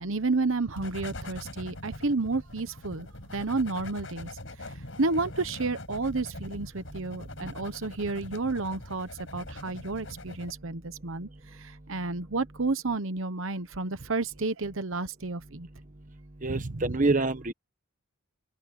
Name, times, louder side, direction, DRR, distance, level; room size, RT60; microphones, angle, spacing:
voice 1, 0.0-3.1 3.3-4.3 5.0-11.3 11.6-15.7 16.5-16.8, right 3 dB, 65° right, 1.1 m, -31 dB
sound 1, 0.8-10.5, left 2 dB, 60° left, 7.0 m, -43 dB
voice 2, 16.4-17.5, right 3 dB, 35° right, 1.2 m, -26 dB
open air
head